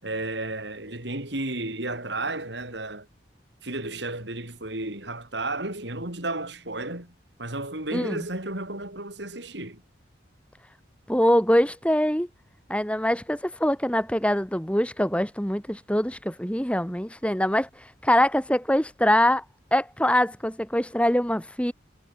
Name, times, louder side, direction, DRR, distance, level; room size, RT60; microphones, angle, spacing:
voice 1, 0.0-3.1 3.6-7.1 7.4-9.8, right 2 dB, 70° right, 6.3 m, -33 dB
voice 2, 7.9-8.2 11.1-12.3 12.7-17.7 18.0-19.4 19.7-21.7, left 1 dB, 5° left, 2.0 m, -23 dB
head